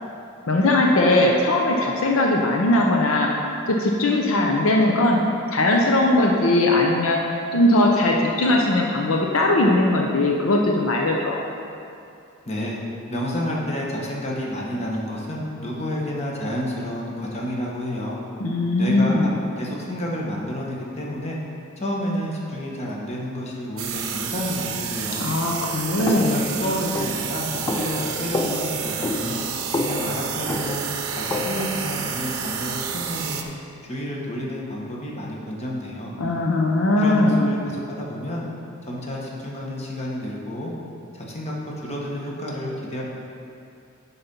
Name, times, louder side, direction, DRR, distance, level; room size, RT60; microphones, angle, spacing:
voice 1, 0.5-3.3 3.8-5.2 5.5-7.2 7.5-11.4 18.4-19.3 25.2-26.4 36.2-37.5, left 2 dB, 75° left, 0 dB, 0.7 m, -19 dB
voice 2, 12.4-12.8 13.1-18.2 18.8-19.3 19.6-21.4 21.8-25.3 26.0-29.4 29.8-30.8 31.1-33.4 33.9-36.1 37.0-38.5 38.8-40.7 41.1-41.5 41.8-43.0, left 1 dB, 30° left, -3 dB, 1.3 m, -30 dB
sound 1, 23.8-33.4, right 7 dB, 80° right, 0.6 m, -30 dB
sound 2, 26.0-31.8, left 2 dB, 15° left, 0.4 m, -29 dB
10.0 x 4.2 x 5.3 m, 2.6 s
head